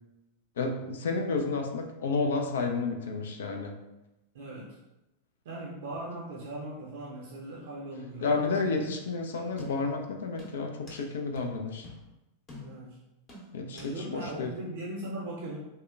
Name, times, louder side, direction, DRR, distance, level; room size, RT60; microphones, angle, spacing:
voice 1, 0.6-3.7 8.2-11.9 13.5-14.5, left 4 dB, 60° left, 3 dB, 0.3 m, -31 dB
voice 2, 4.3-4.8 5.4-8.5 12.6-13.0 13.7-15.6, right 1 dB, 55° right, -5 dB, 0.5 m, -39 dB
sound 1, 9.6-10.0 10.4-11.1 11.4-11.5 11.8-12.0 12.5-12.9 13.3-14.0 14.3-14.4, left 2 dB, 25° left, 0.8 m, -47 dB
3.5 x 2.1 x 2.3 m, 0.95 s
figure-of-eight pair, 90°, 0 cm